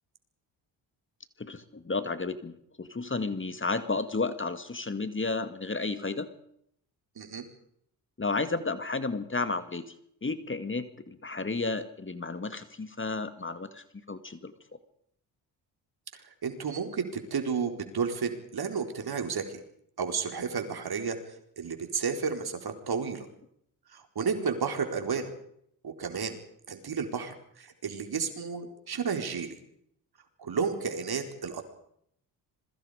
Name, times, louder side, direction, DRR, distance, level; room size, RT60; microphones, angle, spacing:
voice 1, 1.4-6.3 8.2-9.9 10.2-14.5, left 3 dB, 25° left, 10 dB, 2.2 m, -32 dB
voice 2, 16.4-17.0 17.3-19.6 20.0-21.2 21.6-23.3 23.9-25.3 25.8-26.4 26.7-29.6 30.4-31.6, right 6 dB, 50° right, 5 dB, 4.6 m, -32 dB
27.0 x 22.5 x 5.2 m, 0.71 s
hypercardioid pair, 50°, 47 cm